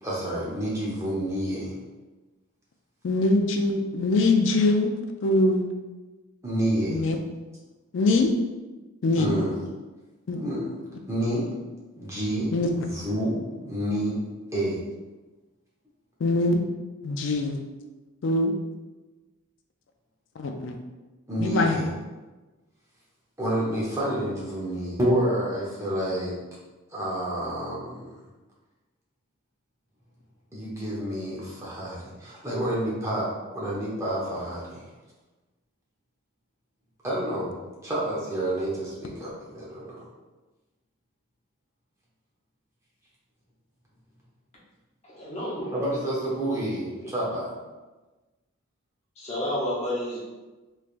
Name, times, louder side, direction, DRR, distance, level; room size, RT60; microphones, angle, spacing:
voice 1, 0.0-1.7 6.4-7.0 9.2-9.6 10.3-10.8 11.1-11.5 12.0-13.4 13.6-14.2 14.5-14.8 21.3-21.9 23.4-26.3 26.9-28.0 30.5-34.9 37.0-37.6 37.8-40.0 45.7-47.5, right 1 dB, 15° right, -6 dB, 0.8 m, -29 dB
voice 2, 3.0-4.9 5.2-5.7 6.9-7.2 7.9-8.3 9.0-9.4 10.3-10.4 12.5-12.7 16.2-16.6 17.0-17.6 18.2-18.5 20.4-20.8 21.4-21.8, left 2 dB, 60° left, 4 dB, 0.4 m, -23 dB
voice 3, 45.0-45.8 47.0-47.1 49.2-50.2, left 1 dB, 30° left, -6 dB, 0.9 m, -30 dB
3.4 x 3.2 x 2.5 m, 1.2 s
head